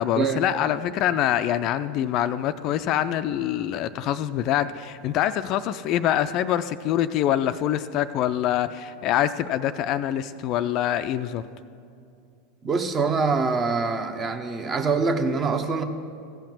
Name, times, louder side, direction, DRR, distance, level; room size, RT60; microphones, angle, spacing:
voice 1, 0.0-11.4, left 11 dB, 45° left, 12 dB, 0.3 m, -25 dB
voice 2, 12.6-15.8, right 4 dB, 30° right, 7 dB, 0.9 m, -24 dB
15.0 x 5.8 x 7.3 m, 2.5 s
figure-of-eight pair, 85°, 0 cm